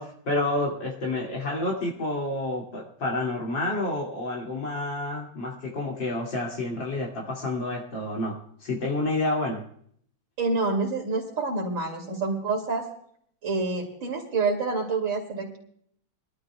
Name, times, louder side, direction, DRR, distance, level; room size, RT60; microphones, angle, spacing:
voice 1, 0.0-9.6, left 2 dB, 60° left, -1 dB, 3.3 m, -29 dB
voice 2, 10.4-12.9 13.4-15.6, right 3 dB, 65° right, -1 dB, 3.1 m, -27 dB
24.5 x 12.5 x 2.3 m, 0.64 s
omnidirectional pair, 2.3 m